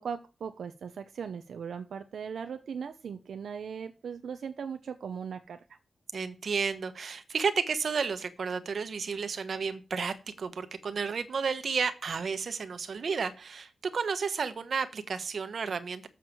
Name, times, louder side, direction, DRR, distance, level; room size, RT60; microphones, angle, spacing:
voice 1, 0.0-5.6, right 6 dB, 90° right, 8 dB, 0.8 m, -38 dB
voice 2, 6.1-16.1, right 5 dB, 65° right, 10 dB, 1.3 m, -32 dB
7.5 x 7.2 x 7.5 m, 0.32 s
wide cardioid pair, 90°, 0 cm